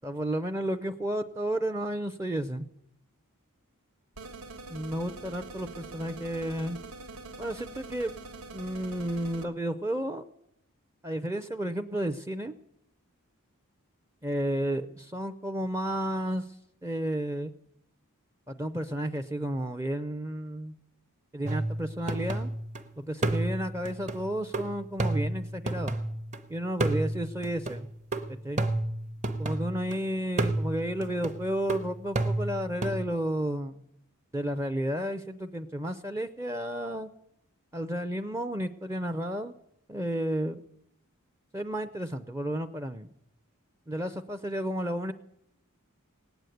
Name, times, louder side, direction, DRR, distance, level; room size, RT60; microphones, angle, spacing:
voice 1, 0.0-2.7 4.7-6.8 7.4-8.1 8.5-10.2 11.0-12.5 14.2-16.5 16.8-17.5 18.5-20.7 21.3-22.5 23.0-25.9 26.5-27.9 28.3-28.6 29.4-33.8 34.3-37.1 37.7-39.5 39.9-40.6 41.5-43.1 43.9-45.1, right 1 dB, 15° right, 8 dB, 0.5 m, -32 dB
sound 1, 4.2-9.5, right 3 dB, 75° right, 1.4 m, -44 dB
sound 2, 21.4-22.8 23.2-26.4 26.8-30.0 30.4-33.0, right 2 dB, 30° right, 0.9 m, -31 dB
18.0 x 8.0 x 9.1 m, 0.79 s
head